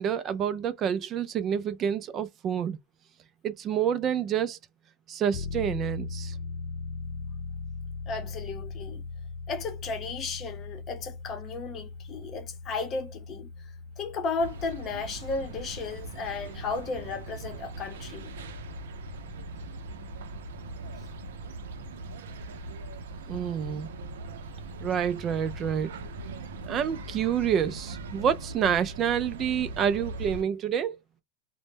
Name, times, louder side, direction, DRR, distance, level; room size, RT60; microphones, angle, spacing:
voice 1, 0.0-2.8 3.4-4.6 5.1-6.4 23.3-23.9 24.8-25.9 26.7-31.0, right 8 dB, 35° right, 0.3 m, -28 dB
sound 1, 5.3-21.7, left 4 dB, 65° left, 0.4 m, -41 dB
voice 2, 8.1-9.0 9.5-13.5 14.0-18.3, left 4 dB, 35° left, 0.7 m, -34 dB
sound 2, 14.4-30.4, right 2 dB, 90° right, 0.5 m, -40 dB
2.1 x 2.0 x 3.2 m
supercardioid pair, 130°, 0 cm